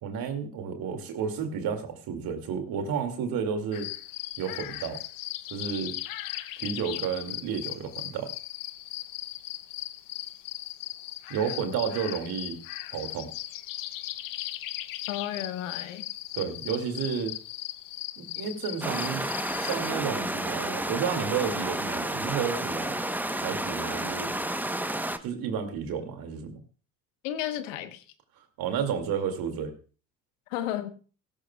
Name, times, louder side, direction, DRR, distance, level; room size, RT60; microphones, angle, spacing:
voice 1, 0.0-3.9 4.4-5.0 5.5-6.0 6.6-8.3 11.3-12.6 12.9-13.3 16.3-17.3 18.2-19.3 19.6-23.0 23.3-24.3 25.2-26.6 28.6-29.7, right 7 dB, 70° right, 6 dB, 2.3 m, -31 dB
sound 1, 3.7-19.9, left 14 dB, 60° left, 0.7 m, -38 dB
voice 2, 15.1-16.0 27.2-28.0 30.5-30.9, left 12 dB, 90° left, 10 dB, 1.1 m, -32 dB
sound 2, 18.8-25.2, right 1 dB, 5° right, 0.9 m, -31 dB
16.0 x 14.5 x 2.3 m, 0.37 s
hypercardioid pair, 60°, 38 cm